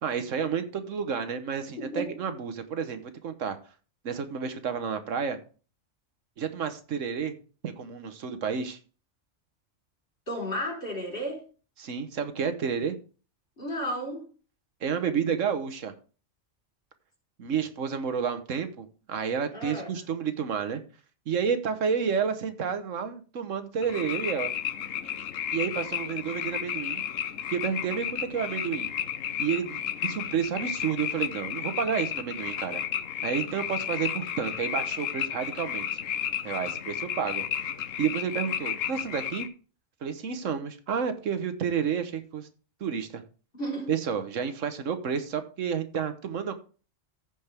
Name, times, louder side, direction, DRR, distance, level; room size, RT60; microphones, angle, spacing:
voice 1, 0.0-3.6 4.0-5.4 6.4-7.3 7.6-8.8 11.8-12.9 14.8-15.9 17.4-20.8 21.3-24.5 25.5-27.0 27.5-28.9 29.4-32.8 33.2-35.9 36.4-37.5 38.0-39.5 40.0-42.5 42.8-43.2 43.9-46.6, right 7 dB, 80° right, 1.4 m, -30 dB
voice 2, 1.8-2.2 10.3-11.4 13.6-14.3 19.5-20.0 43.5-43.9, equal, 45° left, 4.2 m, -33 dB
sound 1, 23.8-39.5, left 9 dB, 80° left, 1.2 m, -33 dB
15.0 x 5.2 x 3.4 m
omnidirectional pair, 1.3 m